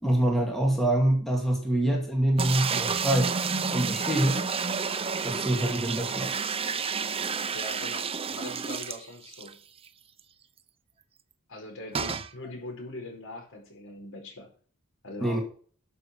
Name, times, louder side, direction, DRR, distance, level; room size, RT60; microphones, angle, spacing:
voice 1, 0.0-3.4 3.7-4.4 5.2-6.3 6.7-6.8 15.2-15.4, right 1 dB, ahead, 0 dB, 2.5 m, -25 dB
sound 1, 2.4-9.5 9.9-10.0 10.2-10.3 11.9-12.3, right 5 dB, 25° right, 0.7 m, -30 dB
voice 2, 7.5-9.6 11.5-14.5 15.0-15.4, left 1 dB, 60° left, 2 dB, 4.8 m, -41 dB
12.0 x 6.9 x 6.0 m, 0.43 s
head